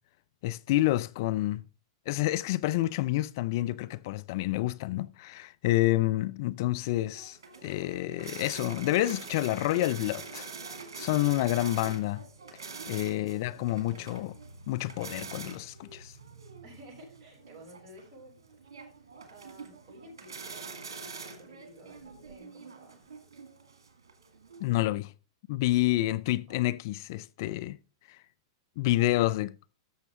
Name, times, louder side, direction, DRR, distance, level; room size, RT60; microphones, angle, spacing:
voice 1, 0.4-1.6 2.1-10.5 11.0-12.2 12.9-14.3 14.7-16.1 24.6-25.1 25.5-27.8 28.1-28.2 28.8-29.5, left 16 dB, 55° left, 0.4 m, -28 dB
sound 1, 6.8-24.7, right 4 dB, 75° right, 2.2 m, -45 dB
voice 2, 13.1-13.6 13.9-14.1 16.6-18.9 19.3-23.2 26.5-26.6, right 1 dB, 35° right, 6.7 m, -53 dB
13.5 x 6.6 x 3.6 m
hypercardioid pair, 105°, 2 cm